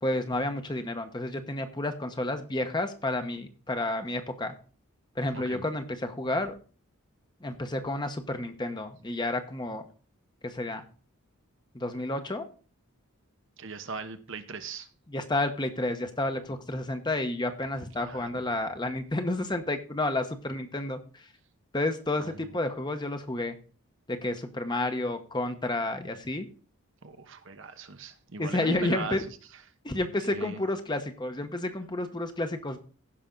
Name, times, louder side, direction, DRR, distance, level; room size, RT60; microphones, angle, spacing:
voice 1, 0.0-4.5 5.2-6.5 7.4-9.8 10.4-10.8 11.7-12.5 15.1-21.3 21.7-23.6 24.1-26.5 28.4-29.2 29.8-32.8, left 2 dB, 20° left, 0.9 m, -30 dB
voice 2, 5.3-5.6 13.6-14.9 18.0-18.5 22.2-22.4 27.0-29.4 30.3-30.6, right 4 dB, 60° right, 1.0 m, -39 dB
15.5 x 5.8 x 3.8 m
head